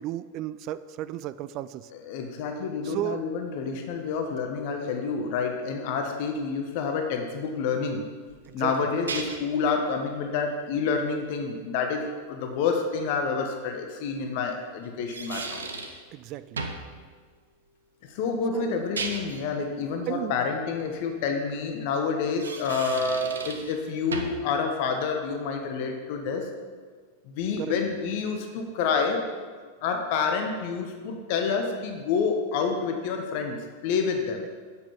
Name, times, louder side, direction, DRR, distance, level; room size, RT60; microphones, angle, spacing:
voice 1, 0.0-1.9 2.8-3.3 8.5-8.7 16.1-16.6 18.5-18.9 20.1-20.4 27.6-27.7, right 13 dB, 40° right, 15 dB, 0.3 m, -34 dB
voice 2, 1.9-8.0 8.5-15.6 18.0-26.5 27.2-29.2 29.8-34.4, left 5 dB, 45° left, 4 dB, 1.0 m, -28 dB
sound 1, 8.3-9.6 12.8-12.9 14.8-16.0 16.6-16.9 18.7-19.5 22.2-23.8 24.1-24.5, right 3 dB, 70° right, 0.9 m, -35 dB
8.1 x 7.6 x 5.7 m, 1.6 s
figure-of-eight pair, 90°, 0 cm